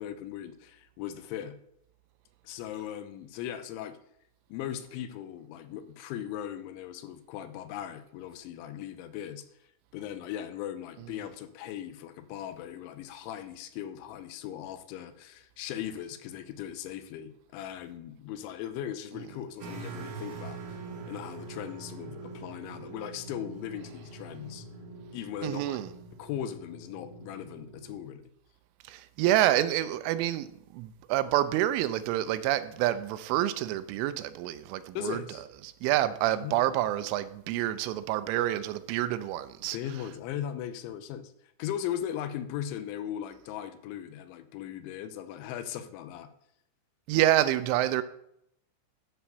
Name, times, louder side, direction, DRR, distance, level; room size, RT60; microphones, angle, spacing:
voice 1, 0.0-1.6 2.4-4.0 4.5-9.5 9.9-24.7 25.1-25.8 26.2-28.2 35.0-35.4 36.3-36.7 39.7-41.3 41.6-46.3, left 10 dB, 80° left, 3.0 m, -38 dB
sound 1, 19.6-28.0, right 3 dB, 70° right, 3.8 m, -44 dB
voice 2, 25.4-25.9 28.9-30.5 30.7-35.2 35.8-39.8 47.1-48.0, right 13 dB, 90° right, 3.1 m, -27 dB
12.5 x 4.5 x 6.7 m
omnidirectional pair, 5.5 m